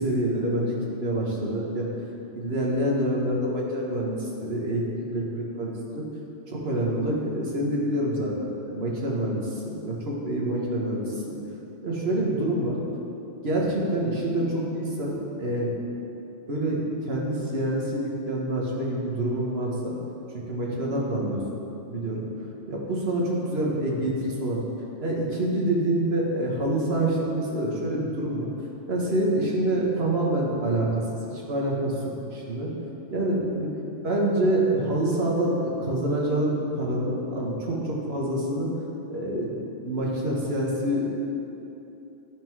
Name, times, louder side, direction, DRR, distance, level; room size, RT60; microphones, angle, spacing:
voice 1, 0.0-1.9 2.3-4.8 5.1-6.0 6.5-11.3 11.8-12.8 13.4-15.7 16.5-19.9 20.3-21.4 21.9-22.2 22.7-24.6 25.0-28.5 28.9-31.0 31.3-32.7 33.1-33.7 34.0-38.7 39.1-41.2, right 1 dB, 55° right, -3 dB, 1.4 m, -26 dB
10.5 x 3.8 x 4.7 m, 2.9 s
omnidirectional pair, 1.3 m